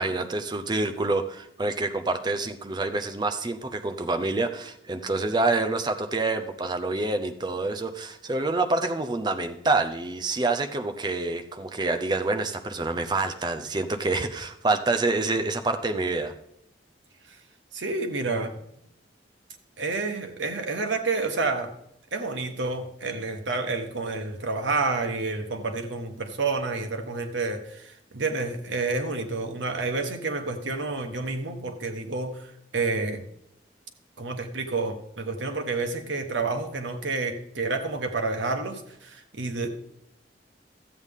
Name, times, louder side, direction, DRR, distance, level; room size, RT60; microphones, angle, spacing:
voice 1, 0.0-16.3, right 3 dB, 25° right, 8 dB, 0.6 m, -27 dB
voice 2, 17.7-18.5 19.8-21.7 22.1-32.5 32.7-33.2 34.2-39.7, right 3 dB, 90° right, 5 dB, 1.2 m, -29 dB
13.0 x 8.1 x 3.6 m, 0.77 s
head